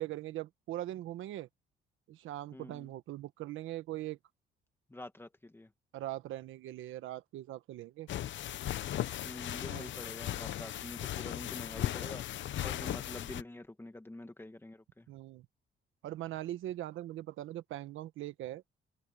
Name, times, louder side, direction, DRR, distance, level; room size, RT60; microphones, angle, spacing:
voice 1, 0.0-1.5 2.1-4.2 5.9-8.1 9.7-9.9 15.1-15.4 16.0-18.6, right 14 dB, 85° right, 1.3 m, -41 dB
voice 2, 2.5-2.9 4.9-5.7 9.2-15.1, left 1 dB, 10° left, 2.0 m, -47 dB
sound 1, 8.1-13.4, left 12 dB, 70° left, 0.9 m, -37 dB
open air
cardioid pair, 90°, 20 cm